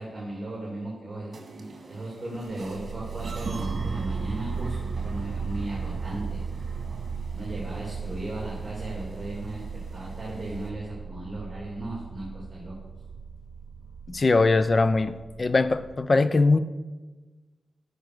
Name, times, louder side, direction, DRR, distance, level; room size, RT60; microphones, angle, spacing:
voice 1, 0.0-6.4 7.3-9.6 9.9-12.7, right 1 dB, 25° right, 2.9 m, -36 dB
sound 1, 1.3-10.7, right 3 dB, 50° right, 1.7 m, -42 dB
sound 2, 2.6-16.0, right 5 dB, 70° right, 0.3 m, -36 dB
voice 2, 14.1-16.6, left 3 dB, 35° left, 0.5 m, -21 dB
14.5 x 5.2 x 6.6 m
wide cardioid pair, 130°, 0 cm